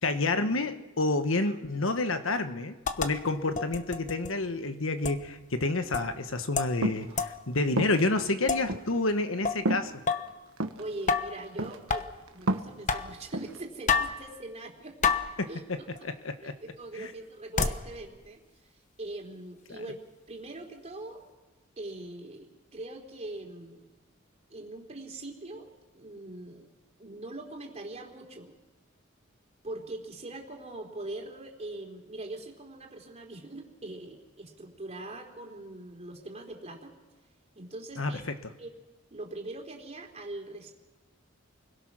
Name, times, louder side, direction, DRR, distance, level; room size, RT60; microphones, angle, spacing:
voice 1, 0.0-9.9 15.7-16.6 17.0-17.1 38.0-38.4, left 2 dB, 75° left, 9 dB, 1.3 m, -29 dB
sound 1, 2.9-3.1 3.6-4.3 5.0-5.2 5.9-6.1 6.6-6.8 7.2-7.4 8.5-8.7 9.5-9.6 10.1-10.3 11.1-11.4 11.9-12.1 12.9-13.1 13.9-14.2 15.0-15.3 16.0-16.1 17.6-17.8, left 5 dB, 40° left, 1.1 m, -28 dB
sound 2, 6.8-7.1 7.8-8.0 8.7-8.8 9.6-9.9 10.6-10.8 11.6-12.0 12.3-12.8 13.3-13.6, right 1 dB, 85° right, 1.4 m, -29 dB
voice 2, 10.8-12.1 12.3-15.2 15.5-15.9 16.4-18.4 18.7-20.0 20.3-21.2 21.8-23.8 24.5-25.7 25.9-26.7 27.0-28.6 29.6-37.0 37.5-38.2 38.6-38.7 39.1-40.7, right 2 dB, 35° right, 1 dB, 3.5 m, -42 dB
29.5 x 21.5 x 6.1 m, 1.1 s
head